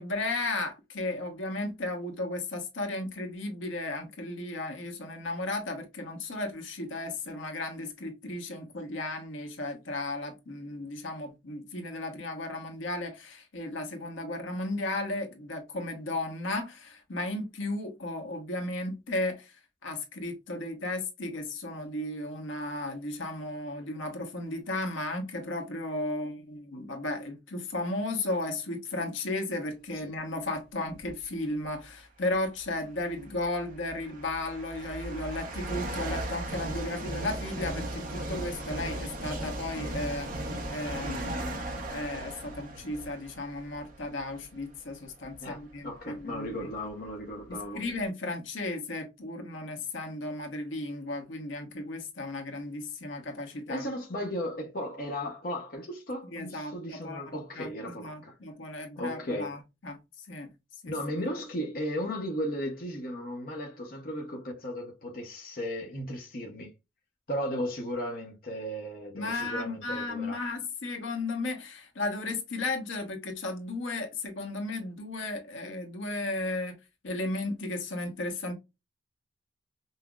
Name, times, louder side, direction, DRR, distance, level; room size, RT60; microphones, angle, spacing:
voice 1, 0.0-19.6 19.8-46.5 47.5-53.8 56.3-57.2 57.6-57.7 58.0-60.5 60.8-60.9 69.1-76.7 77.0-78.5, left 2 dB, 75° left, 0.9 m, -35 dB
sound 1, 30.9-31.2 32.3-32.4 33.2-44.6 45.2-45.4 46.2-46.3 46.5-48.0, right 1 dB, 45° right, 0.8 m, -37 dB
voice 2, 45.4-47.8 53.7-58.4 59.0-59.6 60.9-66.7 67.3-70.4, equal, 45° left, 0.7 m, -35 dB
5.5 x 2.0 x 2.3 m
head